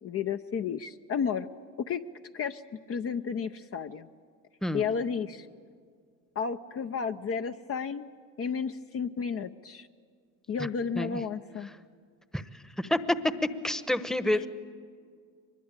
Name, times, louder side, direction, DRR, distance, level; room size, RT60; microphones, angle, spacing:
voice 1, 0.0-1.5 1.9-2.0 2.3-2.6 2.9-4.1 4.7-5.5 6.4-8.1 8.4-9.9 10.5-11.7 14.4-14.5, left 6 dB, 40° left, 7 dB, 0.8 m, -32 dB
voice 2, 13.6-14.5, left 1 dB, ahead, 12 dB, 1.1 m, -28 dB
24.0 x 21.0 x 9.0 m, 2.1 s
supercardioid pair, 85°, 37 cm